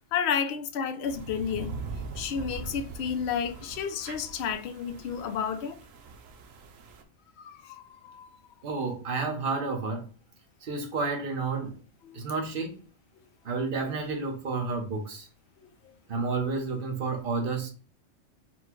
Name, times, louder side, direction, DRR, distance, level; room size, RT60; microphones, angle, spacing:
voice 1, 0.1-1.8 2.2-5.8 7.4-8.3 12.0-12.2 13.2-13.3 15.6-15.7, left 7 dB, 65° left, 0.8 m, -31 dB
sound 1, 1.0-7.0, right 4 dB, 85° right, 1.1 m, -42 dB
voice 2, 8.6-10.1 10.6-11.8 12.1-12.8 13.4-15.3 16.1-17.7, right 4 dB, 45° right, 1.1 m, -30 dB
4.3 x 2.2 x 4.4 m
omnidirectional pair, 1.3 m